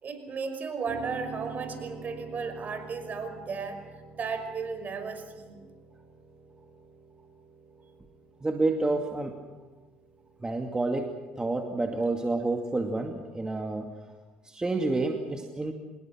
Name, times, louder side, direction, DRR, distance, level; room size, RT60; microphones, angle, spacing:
voice 1, 0.0-3.8 4.2-5.6, right 5 dB, 45° right, 7 dB, 5.5 m, -34 dB
Piano, 0.8-11.0, right 6 dB, 70° right, 5.5 m, -48 dB
voice 2, 8.4-9.4 10.4-13.9 14.4-15.7, right 2 dB, 20° right, 3 dB, 2.4 m, -29 dB
26.5 x 21.0 x 6.3 m, 1.3 s
hypercardioid pair, 65°, 4 cm